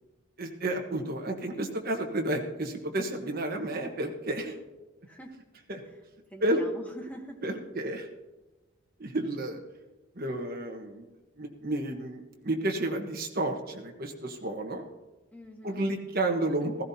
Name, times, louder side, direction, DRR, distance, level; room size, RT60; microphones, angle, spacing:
voice 1, 0.4-4.6 5.7-5.8 6.4-6.6 7.4-8.1 9.0-9.6 10.1-11.0 11.4-14.9 15.6-16.8, right 1 dB, 45° right, 3 dB, 1.3 m, -31 dB
voice 2, 6.3-7.4 15.3-15.9, right 1 dB, 5° left, 3 dB, 1.1 m, -45 dB
16.0 x 14.5 x 2.8 m, 1.1 s
head